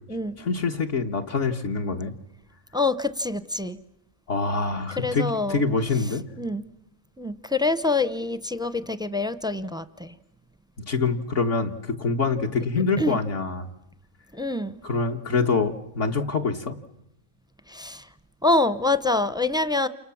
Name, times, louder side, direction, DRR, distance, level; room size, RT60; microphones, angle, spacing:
voice 1, 0.4-2.1 4.3-6.2 10.9-13.7 14.8-16.8, left 4 dB, 60° left, 2 dB, 1.7 m, -25 dB
voice 2, 2.7-3.8 5.0-5.6 6.4-6.7 7.2-10.1 13.0-13.2 14.3-14.8 17.7-18.1 18.4-19.9, left 2 dB, 5° right, 14 dB, 0.7 m, -25 dB
29.0 x 27.0 x 7.1 m, 0.82 s
omnidirectional pair, 1.5 m